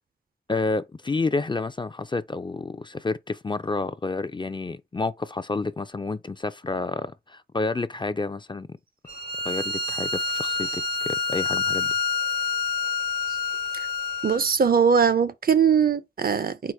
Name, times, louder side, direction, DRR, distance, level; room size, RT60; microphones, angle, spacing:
voice 1, 0.5-8.7 9.4-11.9, left 3 dB, 25° left, 0.3 m, -29 dB
Bowed string instrument, 9.1-14.4, left 4 dB, 65° left, 1.2 m, -27 dB
voice 2, 14.2-16.7, right 6 dB, 60° right, 0.5 m, -21 dB
4.8 x 2.1 x 4.3 m
wide cardioid pair, 50°, 18 cm